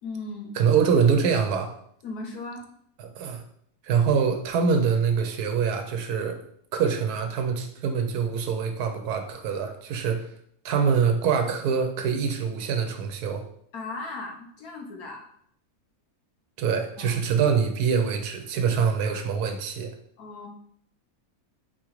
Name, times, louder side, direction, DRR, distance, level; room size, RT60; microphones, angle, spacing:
voice 1, 0.0-0.5 2.0-2.6 13.7-15.3 17.0-17.2 20.2-20.5, left 3 dB, 85° left, 1 dB, 1.4 m, -37 dB
voice 2, 0.6-1.7 3.0-3.4 3.8-6.4 6.7-10.3 10.6-13.4 16.6-19.9, right 6 dB, 85° right, 5 dB, 1.2 m, -24 dB
4.4 x 3.7 x 3.1 m, 0.66 s
omnidirectional pair, 1.6 m